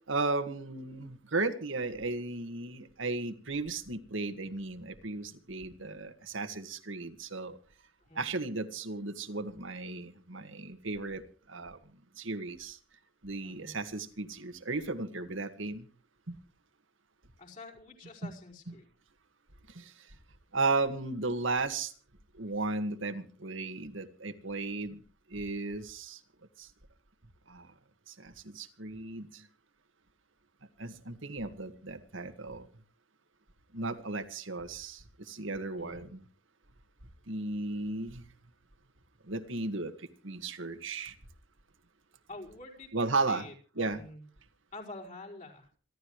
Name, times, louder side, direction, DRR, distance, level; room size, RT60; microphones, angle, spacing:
voice 1, 0.1-7.6 8.2-11.2 11.5-11.8 12.2-12.8 13.2-15.9 16.3-16.4 18.2-18.3 18.7-18.8 19.8-19.9 20.5-21.9 22.3-25.0 25.3-26.2 26.6-26.7 27.5-27.7 28.2-29.4 30.8-32.7 33.7-36.2 37.3-38.2 39.3-39.9 40.2-41.1 42.9-43.5 43.8-44.0, right 3 dB, 75° right, 9 dB, 1.9 m, -35 dB
voice 2, 13.4-13.8 17.4-18.9 35.7-36.1 42.3-44.2 44.7-45.7, left 2 dB, 40° left, -1 dB, 5.0 m, -47 dB
27.5 x 12.5 x 3.2 m, 0.39 s
head